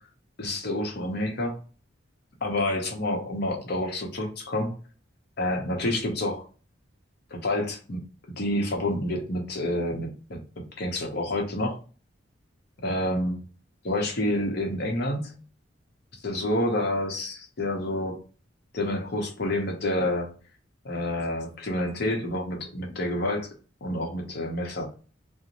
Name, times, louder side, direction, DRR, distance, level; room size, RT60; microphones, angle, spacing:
voice 1, 0.4-1.6 2.4-4.7 5.4-6.5 7.3-8.0 8.4-11.8 12.8-13.4 13.8-15.4 16.2-18.2 18.7-20.3 20.8-23.5 23.8-24.8, left 1 dB, 60° left, 2 dB, 0.8 m, -28 dB
2.5 x 2.1 x 2.9 m, 0.37 s
head